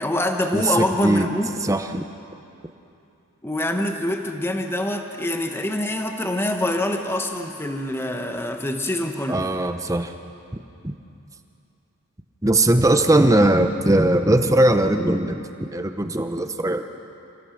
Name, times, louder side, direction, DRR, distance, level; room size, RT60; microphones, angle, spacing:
voice 1, 0.0-1.5 3.4-9.4, left 1 dB, 10° left, 4 dB, 1.1 m, -25 dB
voice 2, 0.5-1.3 1.6-2.0 9.3-10.1 10.8-10.9 12.4-16.8, right 1 dB, 15° right, 7 dB, 0.9 m, -20 dB
28.0 x 16.0 x 6.5 m, 2.7 s
head